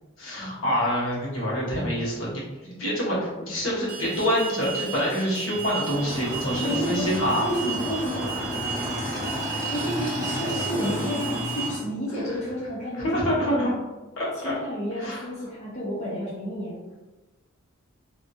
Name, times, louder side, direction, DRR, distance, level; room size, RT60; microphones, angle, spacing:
voice 1, 0.2-7.5 13.0-13.7 14.2-14.5 15.0-15.3, equal, 65° left, -6 dB, 1.0 m, -26 dB
Alarm, 3.9-11.7, right 6 dB, 45° right, 0.5 m, -35 dB
Motorcycle / Engine, 5.9-11.8, equal, 20° right, 1.0 m, -32 dB
voice 2, 6.6-7.1 7.4-8.4 9.6-13.5 14.4-16.8, equal, 35° left, -8 dB, 0.6 m, -30 dB
2.7 x 2.3 x 2.6 m, 1.1 s
head